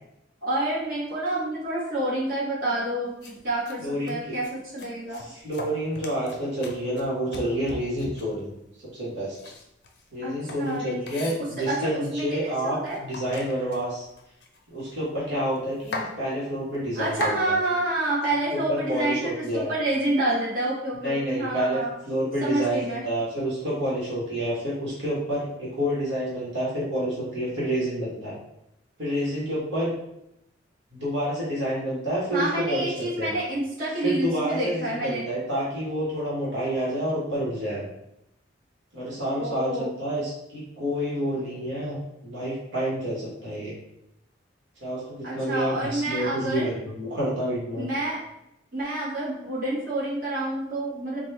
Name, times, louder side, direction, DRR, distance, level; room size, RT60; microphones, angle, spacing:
voice 1, 0.4-5.2 10.2-13.0 16.9-21.9 22.4-23.0 32.3-35.3 39.4-39.9 45.2-46.7 47.8-48.2 48.7-51.3, right 1 dB, 50° right, -9 dB, 1.3 m, -28 dB
sound 1, 3.2-3.3 3.6-3.7 4.1-4.5 4.8-8.4 9.3-11.9 12.5-12.6 12.8-14.9 15.2-15.3 15.6-16.1 16.7-17.4, left 2 dB, 60° left, 0.6 m, -38 dB
voice 2, 3.8-4.4 5.2-8.5 8.9-9.4 10.1-14.0 14.7-17.5 18.5-19.7 21.0-21.8 22.1-28.4 29.0-29.9 30.9-33.3 34.0-37.9 38.9-43.8 44.8-47.9, equal, 70° right, -7 dB, 1.3 m, -29 dB
3.9 x 2.3 x 3.3 m, 0.81 s
head